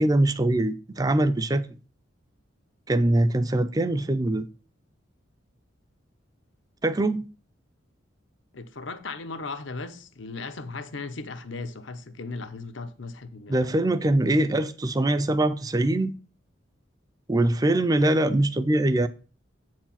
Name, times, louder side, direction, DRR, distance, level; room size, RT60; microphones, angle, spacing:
voice 1, 0.0-1.7 2.9-4.5 6.8-7.2 13.5-16.1 17.3-19.1, right 1 dB, 20° right, 0.4 m, -23 dB
voice 2, 8.5-13.7, left 3 dB, 70° left, 0.8 m, -37 dB
8.2 x 4.7 x 5.7 m
head